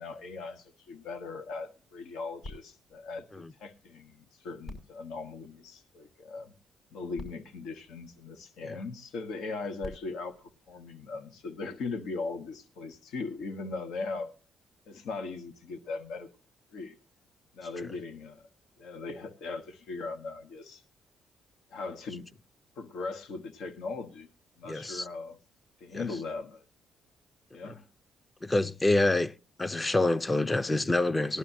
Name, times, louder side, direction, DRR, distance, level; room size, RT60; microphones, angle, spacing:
voice 1, 0.0-6.5 6.9-10.4 10.7-14.3 14.9-16.3 16.7-17.0 17.5-18.5 18.8-20.8 21.7-22.3 22.8-24.3 24.6-25.4 25.8-26.6 27.5-27.9, left 3 dB, 80° left, 1.2 m, -39 dB
sound 1, 2.4-4.1 4.6-6.2 6.9-7.0 7.1-8.7 9.5-11.4 12.1-12.2, left 2 dB, 60° left, 5.9 m, -50 dB
voice 2, 24.7-25.1 25.9-26.1 27.6-27.7 28.4-29.3 29.6-31.4, left 2 dB, 20° left, 0.6 m, -27 dB
19.0 x 11.5 x 2.6 m
cardioid pair, 90°, 0 cm